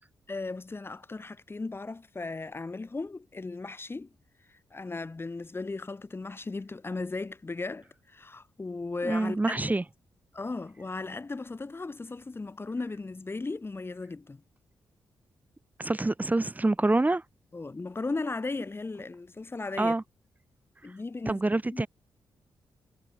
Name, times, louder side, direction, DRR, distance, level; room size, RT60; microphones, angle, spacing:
voice 1, 0.3-4.1 4.5-9.6 10.3-14.4 17.5-19.9 20.8-21.4 21.7-21.9, left 3 dB, 30° left, 5.6 m, -36 dB
voice 2, 9.0-9.8 15.8-17.2 19.8-20.0 21.3-21.9, right 2 dB, 20° right, 5.1 m, -26 dB
cardioid pair, 90°, 8 cm